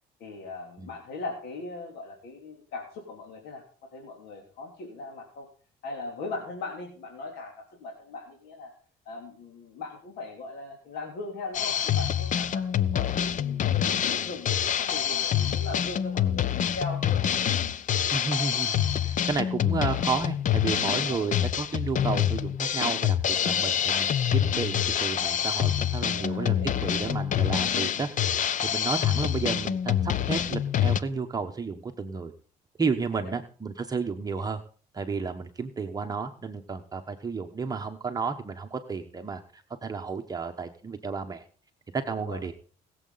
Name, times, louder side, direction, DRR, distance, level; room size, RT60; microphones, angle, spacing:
voice 1, 0.2-5.5 5.8-8.7 9.0-17.2 21.0-21.5 26.0-27.1 33.1-33.3 42.1-42.4, left 3 dB, 75° left, 0 dB, 3.3 m, -39 dB
Drum kit, 11.5-31.0, left 9 dB, 50° left, 0.8 m, -26 dB
voice 2, 18.1-26.5 26.8-32.3 32.8-34.6 34.9-41.5 41.9-42.5, right 4 dB, 20° right, 4 dB, 1.1 m, -32 dB
20.5 x 7.7 x 4.0 m, 0.43 s
cardioid pair, 110°, 17 cm